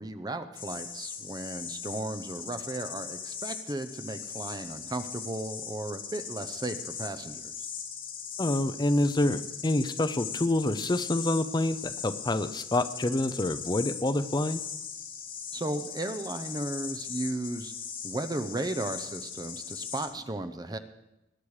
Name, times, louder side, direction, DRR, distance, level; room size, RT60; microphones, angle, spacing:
voice 1, 0.0-7.5 15.5-17.7 18.0-20.8, right 2 dB, 20° right, 9 dB, 0.7 m, -35 dB
sound 1, 0.5-20.1, left 7 dB, 50° left, 2.3 m, -39 dB
voice 2, 8.4-14.6, left 1 dB, 20° left, 11 dB, 0.6 m, -27 dB
20.5 x 10.0 x 4.9 m, 0.90 s
head